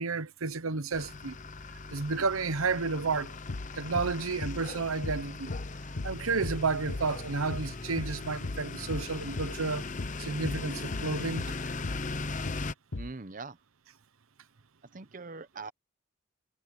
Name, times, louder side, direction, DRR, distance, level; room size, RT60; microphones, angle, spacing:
voice 1, 0.0-1.4 1.9-3.4 3.7-5.5 6.0-9.9 10.2-11.4, right 4 dB, 90° right, 1.0 m, -31 dB
sound 1, 0.9-12.7, left 3 dB, 35° left, 0.8 m, -39 dB
sound 2, 3.5-3.7 4.0-4.2 4.4-4.6 5.0-5.2 5.5-5.7 6.0-6.2 6.4-6.6 6.9-7.1 7.5-7.7 8.0-8.2 8.4-8.6 8.9-9.1 9.4-9.6 10.0-10.2 10.4-10.6 10.9-11.1 11.4-11.6 11.8-12.0 12.5-12.7 12.9-13.1, left 2 dB, 60° left, 1.0 m, -37 dB
voice 2, 13.0-13.6 14.9-15.7, right 3 dB, 40° right, 0.8 m, -42 dB
head